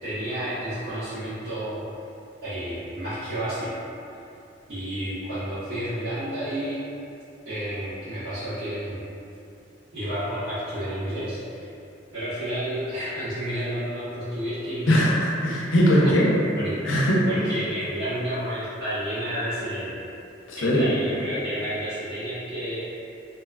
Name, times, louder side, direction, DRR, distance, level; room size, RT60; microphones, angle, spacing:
voice 1, 0.0-1.8 2.4-3.9 4.7-6.8 7.4-9.0 9.9-11.7 12.1-15.0 16.0-16.1 16.5-20.0 20.6-22.8, equal, 75° right, -17 dB, 1.0 m, -31 dB
voice 2, 14.9-16.3 16.8-17.2 20.5-20.9, equal, 85° left, -4 dB, 0.5 m, -20 dB
2.7 x 2.2 x 2.3 m, 2.7 s
head